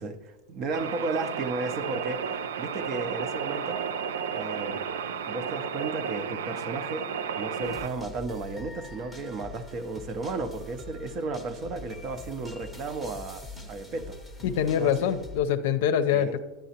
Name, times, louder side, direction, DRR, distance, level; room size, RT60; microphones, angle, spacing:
voice 1, 0.0-3.8 4.3-4.8 5.3-7.1 7.4-14.2 14.8-15.1 16.1-16.3, right 3 dB, 40° right, 9 dB, 0.6 m, -34 dB
sound 1, 0.7-7.9, right 7 dB, 90° right, 0.5 m, -33 dB
sound 2, 7.6-15.4, left 2 dB, 5° right, 0.8 m, -44 dB
voice 2, 14.4-16.4, left 9 dB, 65° left, 10 dB, 0.5 m, -24 dB
10.5 x 9.0 x 2.9 m, 1.2 s
supercardioid pair, 135°, 0 cm